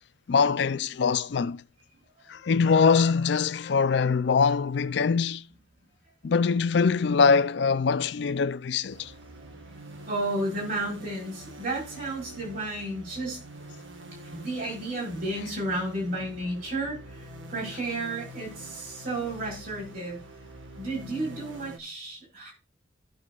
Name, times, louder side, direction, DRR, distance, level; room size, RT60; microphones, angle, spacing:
voice 1, 0.3-1.6 2.3-5.4 6.2-9.1, left 5 dB, 65° left, 0.4 m, -23 dB
sound 1, 8.9-21.8, right 1 dB, 85° right, 1.5 m, -45 dB
voice 2, 9.6-13.4 14.3-20.2 20.8-22.5, right 2 dB, 50° right, 5.5 m, -32 dB
16.0 x 6.4 x 2.4 m
head